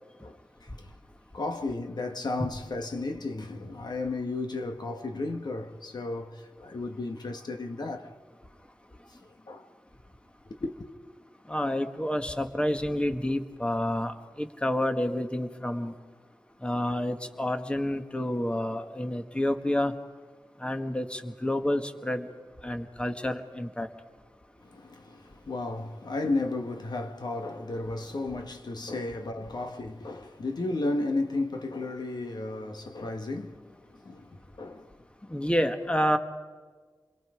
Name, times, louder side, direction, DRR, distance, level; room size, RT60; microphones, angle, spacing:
voice 1, 0.2-1.0 1.3-8.1 9.1-9.7 10.6-10.7 24.6-35.0, left 2 dB, 65° left, 1.5 m, -34 dB
voice 2, 11.5-15.9 16.6-20.0 20.6-22.3 22.6-23.9 35.3-36.2, left 1 dB, 15° left, 1.7 m, -29 dB
29.0 x 22.5 x 5.0 m
wide cardioid pair, 75°, 8 cm